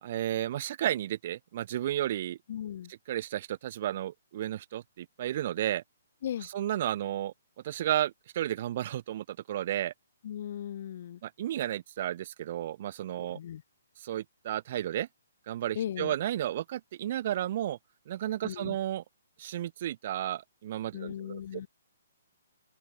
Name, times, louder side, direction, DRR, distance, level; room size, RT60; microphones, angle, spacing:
voice 1, 0.0-2.4 3.1-5.8 6.5-7.3 7.6-9.9 11.2-13.4 14.0-15.1 15.5-17.8 18.1-19.0 19.4-21.4, right 12 dB, 45° right, 1.5 m, -32 dB
voice 2, 2.5-2.9 6.2-6.5 10.2-11.2 13.3-13.6 15.7-16.1 18.4-18.8 20.9-21.7, left 10 dB, 50° left, 4.6 m, -37 dB
open air
hypercardioid pair, 135°, 0 cm